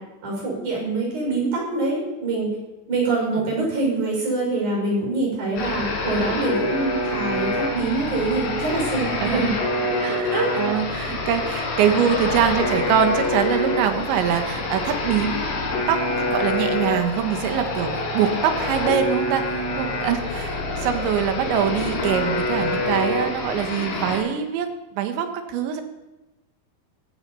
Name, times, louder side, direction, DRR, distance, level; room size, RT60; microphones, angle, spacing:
voice 1, 0.2-2.5 2.9-9.5 10.3-10.5, right 3 dB, 45° right, -2 dB, 7.0 m, -24 dB
sound 1, 5.6-24.2, left 2 dB, 85° left, 6.4 m, -26 dB
voice 2, 10.0-15.5 15.9-25.8, right 8 dB, 85° right, 6 dB, 3.8 m, -24 dB
15.5 x 15.0 x 5.6 m, 1.0 s
omnidirectional pair, 5.1 m